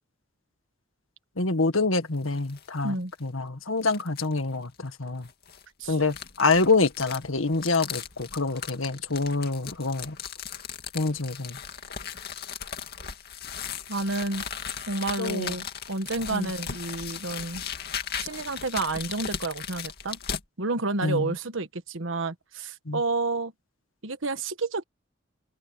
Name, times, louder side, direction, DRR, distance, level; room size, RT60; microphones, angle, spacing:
voice 1, 1.4-2.9 3.2-5.3 5.9-10.2 10.9-11.6 15.2-15.6 16.3-16.5 21.0-21.3 22.9-23.0, left 3 dB, 90° left, 1.8 m, -26 dB
sound 1, 2.1-2.7 3.1-3.2 3.8-4.4 5.2-20.4, left 8 dB, 50° left, 2.3 m, -37 dB
voice 2, 13.9-14.4 14.9-17.6 18.2-20.2 20.6-23.5 24.0-24.8, right 3 dB, 75° right, 1.4 m, -30 dB
head